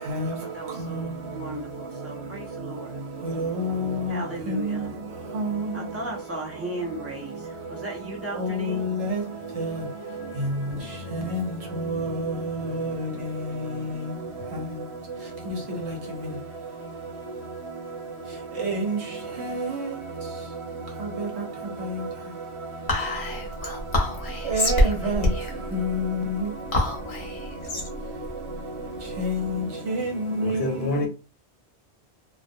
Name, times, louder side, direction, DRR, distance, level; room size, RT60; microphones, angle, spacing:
voice 1, 0.4-2.9 4.1-4.9 5.7-8.8, right 1 dB, 15° right, 0.6 m, -36 dB
voice 2, 3.2-4.2 4.5-4.6 5.3-5.5 8.4-9.2 9.6-9.8 11.1-11.4 11.7-13.0 15.9-16.0 18.6-19.0 19.4-19.8 24.5-25.3 25.7-26.5 29.2-30.6, equal, 75° right, 1.1 m, -27 dB
Whispering, 22.9-29.5, left 1 dB, 40° left, 0.6 m, -27 dB
voice 3, 30.4-31.1, left 2 dB, 70° left, 0.8 m, -27 dB
2.3 x 2.1 x 2.6 m
omnidirectional pair, 1.1 m